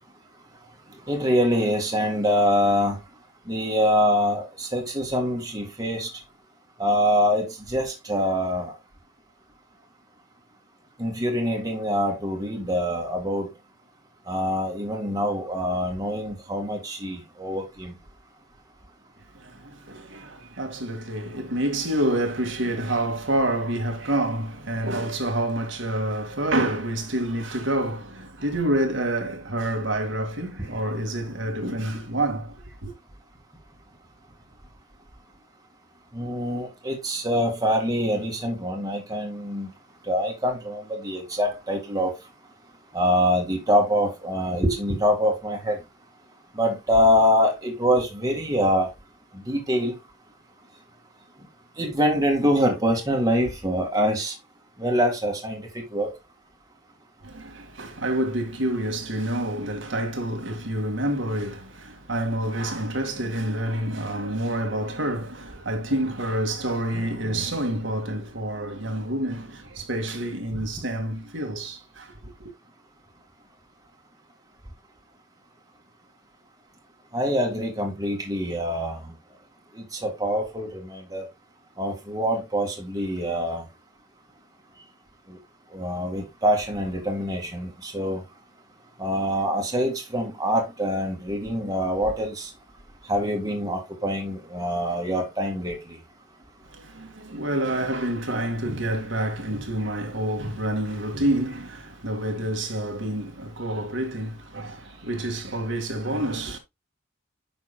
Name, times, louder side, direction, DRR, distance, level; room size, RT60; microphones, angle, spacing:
voice 1, 1.1-3.0 3.5-6.1 6.8-8.7 11.0-13.5 14.3-17.9 36.1-39.7 40.1-42.1 42.9-45.8 46.6-48.9 49.3-49.9 51.8-54.3 54.8-56.1 77.1-79.0 79.7-81.3 81.8-83.7 85.3-85.4 85.7-88.2 89.0-92.5 93.1-96.0, equal, 20° right, 1.9 m, -24 dB
voice 2, 19.3-32.9 57.2-72.5 96.7-106.6, right 1 dB, 75° right, 1.9 m, -28 dB
9.5 x 6.1 x 2.2 m
head